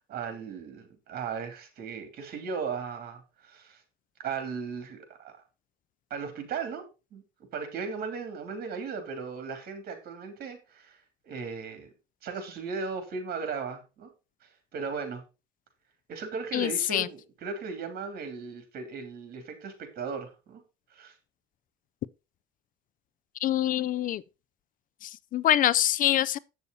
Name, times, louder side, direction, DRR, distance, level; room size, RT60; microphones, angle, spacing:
voice 1, 0.1-3.8 4.2-5.3 6.1-6.9 7.1-7.2 7.5-11.9 12.2-14.1 14.7-15.2 16.1-20.6 20.9-21.1, right 5 dB, 65° right, 2.9 m, -37 dB
voice 2, 16.5-17.1 23.4-24.2 25.0-26.4, left 12 dB, 55° left, 0.4 m, -25 dB
8.4 x 6.9 x 4.0 m
cardioid pair, 110°, 17 cm